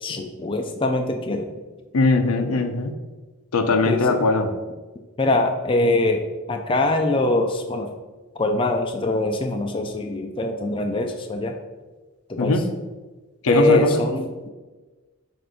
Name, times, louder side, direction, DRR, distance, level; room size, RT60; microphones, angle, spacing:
voice 1, 0.0-1.5 3.9-4.2 5.2-7.9 8.4-11.5 12.3-12.8 13.5-14.3, left 2 dB, 25° left, 4 dB, 0.4 m, -23 dB
voice 2, 1.9-2.9 3.5-4.5 12.4-12.6 13.4-14.0, left 3 dB, 85° left, 6 dB, 0.7 m, -20 dB
7.6 x 2.6 x 5.2 m, 1.3 s
head